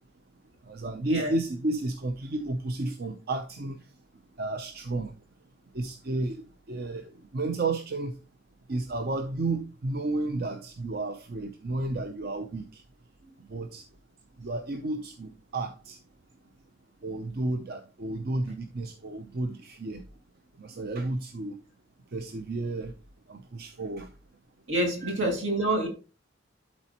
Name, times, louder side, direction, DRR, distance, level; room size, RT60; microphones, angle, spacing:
voice 1, 0.7-3.8 4.4-5.1 5.7-6.4 6.7-7.0 7.3-8.1 8.7-12.8 13.5-13.8 14.4-16.0 17.0-20.0 20.6-21.6 22.1-22.9 23.3-24.1 25.0-25.1, right 2 dB, 55° right, 0.6 m, -32 dB
voice 2, 24.7-25.9, right 1 dB, 80° right, 2.6 m, -27 dB
12.0 x 4.3 x 2.9 m
head